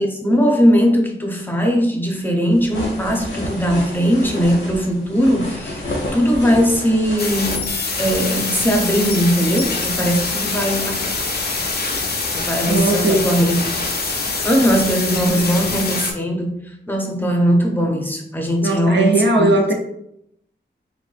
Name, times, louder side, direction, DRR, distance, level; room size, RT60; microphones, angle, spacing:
voice 1, 0.0-7.7 8.0-11.0 12.3-13.6 14.0-14.1 14.4-16.6 16.9-19.5, equal, 10° left, 1 dB, 0.7 m, -19 dB
sound 1, 2.5-8.4, left 1 dB, 90° left, 1.2 m, -30 dB
sound 2, 7.2-16.1, left 3 dB, 55° left, 0.6 m, -24 dB
voice 2, 12.7-13.3 15.3-15.5 18.6-19.7, right 2 dB, 65° right, 2 dB, 0.7 m, -18 dB
3.8 x 3.5 x 2.4 m, 0.76 s
wide cardioid pair, 120°, 20 cm